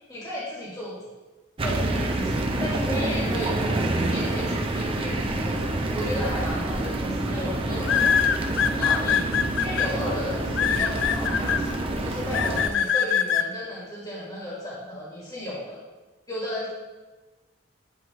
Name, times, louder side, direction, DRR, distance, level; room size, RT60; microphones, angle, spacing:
voice 1, 0.1-1.1 1.6-2.3 2.6-8.2 8.8-15.8 16.3-16.7, left 1 dB, 20° left, -6 dB, 1.5 m, -34 dB
sound 1, 1.6-12.7, right 2 dB, 30° right, 0.5 m, -27 dB
sound 2, 6.6-6.7 7.8-9.9 10.6-11.6 12.3-13.4, left 8 dB, 65° left, 0.4 m, -22 dB
8.8 x 4.4 x 3.0 m, 1.2 s
head